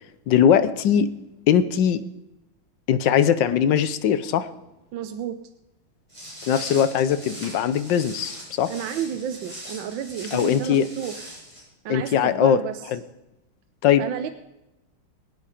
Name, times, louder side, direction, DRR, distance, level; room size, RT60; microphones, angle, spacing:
voice 1, 0.3-1.1 1.5-2.0 2.9-4.5 6.4-8.7 10.3-10.9 11.9-12.6 12.9-13.0 13.8-14.0, left 9 dB, 70° left, 14 dB, 1.2 m, -20 dB
voice 2, 4.9-5.4 8.7-11.3 11.8-12.8 14.0-14.3, right 8 dB, 70° right, 9 dB, 1.4 m, -31 dB
Walk footsteps, 6.1-11.6, equal, 15° right, 6.7 m, -40 dB
22.5 x 8.6 x 5.0 m, 0.95 s
omnidirectional pair, 2.3 m